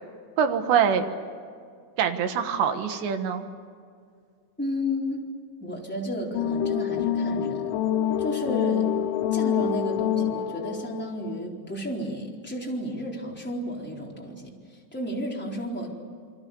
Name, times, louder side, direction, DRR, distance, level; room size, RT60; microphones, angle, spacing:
voice 1, 0.4-1.1 2.0-3.4, right 7 dB, 75° right, 7 dB, 3.6 m, -24 dB
voice 2, 4.6-5.2 5.6-7.8 8.2-8.9 9.3-15.9, equal, ahead, -2 dB, 3.4 m, -32 dB
sound 1, 6.4-11.5, left 9 dB, 85° left, 3.4 m, -26 dB
29.0 x 23.5 x 7.1 m, 2.2 s
omnidirectional pair, 5.2 m